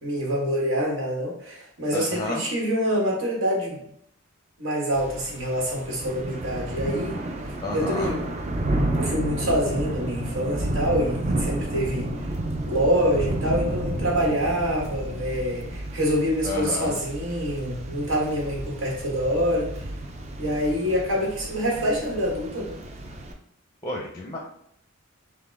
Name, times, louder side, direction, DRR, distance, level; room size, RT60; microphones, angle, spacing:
voice 1, 0.0-3.8 4.6-7.2 7.7-8.3 9.0-12.1 12.6-19.7 20.4-22.8, equal, 65° right, -3 dB, 1.4 m, -26 dB
voice 2, 1.9-2.4 7.6-8.2 16.4-16.9 23.8-24.4, left 2 dB, 20° left, 0 dB, 0.6 m, -31 dB
Thunder / Rain, 4.9-23.3, right 1 dB, 30° right, 0.5 m, -31 dB
5.7 x 2.1 x 3.4 m, 0.71 s
head